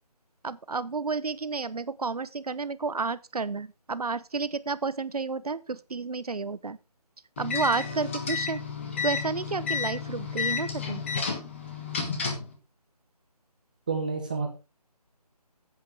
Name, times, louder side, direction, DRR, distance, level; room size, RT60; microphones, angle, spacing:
voice 1, 0.4-5.6 5.9-6.8 7.4-8.6 9.0-11.0, right 4 dB, 65° right, 0.9 m, -31 dB
sound 1, 7.4-12.5, left 6 dB, 20° left, 1.5 m, -31 dB
voice 2, 13.9-14.5, right 4 dB, 15° right, 0.8 m, -29 dB
10.5 x 8.4 x 4.8 m
figure-of-eight pair, 170°, 20 cm